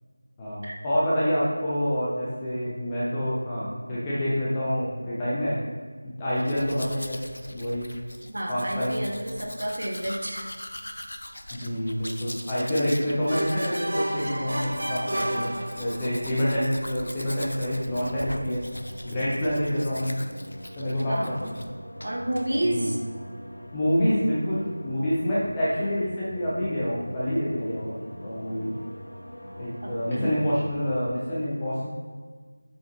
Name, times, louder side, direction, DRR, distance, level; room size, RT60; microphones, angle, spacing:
voice 1, 0.4-5.6 6.0-7.2 7.5-7.9 8.5-9.0 11.5-18.7 19.0-20.2 20.8-21.6 22.6-22.9 23.7-28.7 29.6-31.9, equal, 5° left, -9 dB, 0.5 m, -27 dB
Domestic sounds home sounds, 6.3-21.7 22.0-22.5, left 1 dB, 70° left, 0.6 m, -41 dB
voice 2, 8.3-10.5 11.6-11.7 21.0-21.3 22.0-23.0 29.8-29.9 30.2-30.3, right 1 dB, 45° right, 0 dB, 1.1 m, -30 dB
sound 1, 13.3-16.2, right 1 dB, 85° right, 1.5 m, -30 dB
sound 2, 17.6-31.0, equal, 85° left, 1.4 m, -43 dB
7.4 x 6.0 x 2.9 m, 1.5 s
figure-of-eight pair, 180°, 0 cm